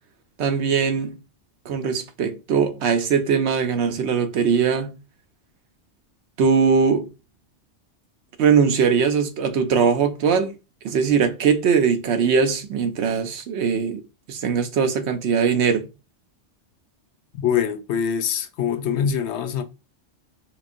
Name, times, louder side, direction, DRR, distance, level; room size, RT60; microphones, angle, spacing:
voice 1, 0.4-1.2 1.7-4.9 6.4-7.1 8.4-10.5 10.8-14.0 14.3-15.9, right 6 dB, 75° right, 0.9 m, -20 dB
voice 2, 17.3-19.6, left 8 dB, 80° left, 0.9 m, -24 dB
4.9 x 3.1 x 2.5 m
omnidirectional pair, 1.2 m